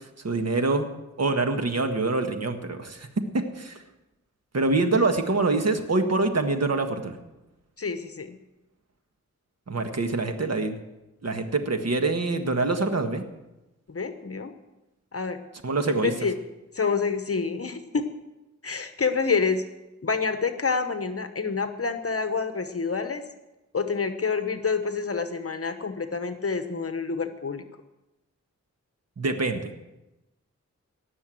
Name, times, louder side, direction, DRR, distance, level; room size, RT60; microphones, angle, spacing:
voice 1, 0.2-0.9 1.2-3.8 4.5-7.2 9.7-10.8 11.2-13.2 15.6-16.1 29.2-29.7, right 3 dB, 55° right, 6 dB, 1.6 m, -25 dB
voice 2, 7.8-8.4 13.9-14.5 15.1-15.4 16.0-16.3 16.7-18.0 18.6-19.6 20.0-23.2 23.7-27.6, left 5 dB, 50° left, 8 dB, 1.1 m, -27 dB
18.5 x 7.0 x 7.7 m, 0.99 s
wide cardioid pair, 80°, 30 cm